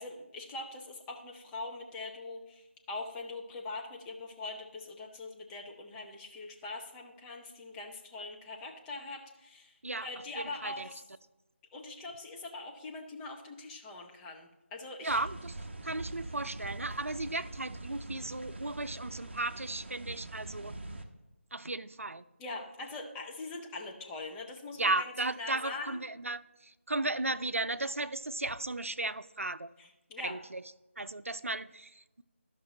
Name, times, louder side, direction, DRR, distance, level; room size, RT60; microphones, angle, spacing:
voice 1, 0.0-11.0 11.7-15.2 22.4-26.0 29.8-30.4, left 3 dB, 5° left, 0.4 m, -42 dB
voice 2, 10.4-10.9 15.0-15.5 15.8-20.8 21.5-22.2 24.8-29.7 30.2-30.6 31.0-32.2, right 2 dB, 90° right, 0.4 m, -35 dB
sound 1, 15.1-21.0, right 2 dB, 55° right, 0.9 m, -43 dB
12.0 x 5.8 x 3.1 m
figure-of-eight pair, 160°, 7 cm